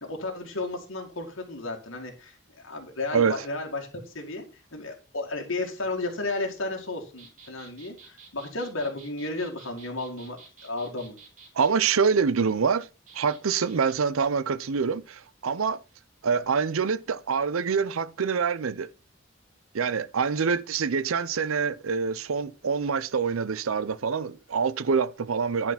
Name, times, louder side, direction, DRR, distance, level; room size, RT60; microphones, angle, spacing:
voice 1, 0.0-4.4 4.7-11.2, left 2 dB, 80° left, 2.2 m, -33 dB
sound 1, 7.2-11.7 13.1-13.9, right 4 dB, 40° right, 2.9 m, -51 dB
voice 2, 11.6-12.9 13.1-15.8 16.2-18.9 19.7-25.7, right 5 dB, 90° right, 0.6 m, -25 dB
10.5 x 4.8 x 5.8 m
head